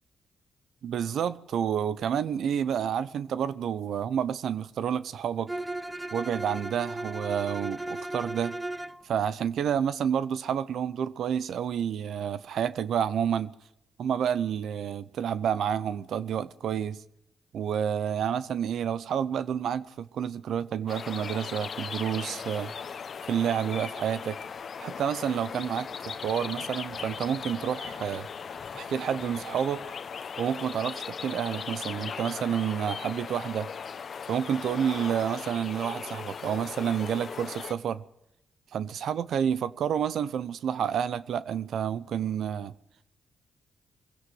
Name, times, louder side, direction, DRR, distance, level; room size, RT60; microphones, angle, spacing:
voice 1, 0.8-5.5 6.1-8.5 9.0-13.5 14.0-17.0 17.5-22.7 23.3-24.4 24.8-28.3 28.7-29.8 30.4-33.7 34.3-38.0 38.7-42.7, right 8 dB, 75° right, 0.8 m, -29 dB
Bowed string instrument, 5.5-9.0, right 2 dB, 15° right, 0.9 m, -36 dB
sound 1, 20.9-37.7, left 6 dB, 55° left, 1.1 m, -38 dB
23.5 x 16.5 x 7.8 m
supercardioid pair, 55°, 0 cm